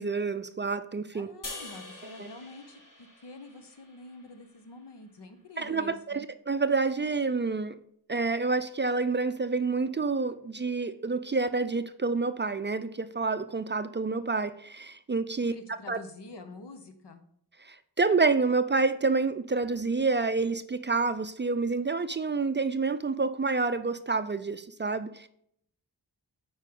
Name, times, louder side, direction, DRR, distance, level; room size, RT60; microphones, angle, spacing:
voice 1, 0.0-1.3 2.2-2.3 5.6-7.8 8.1-16.0 17.6-25.3, right 4 dB, 30° right, 0.4 m, -28 dB
voice 2, 1.1-6.3 15.5-17.2, left 2 dB, 75° left, 1.0 m, -47 dB
sound 1, 1.4-4.7, left 2 dB, 50° left, 1.9 m, -45 dB
8.2 x 4.5 x 3.7 m
cardioid pair, 40°, 41 cm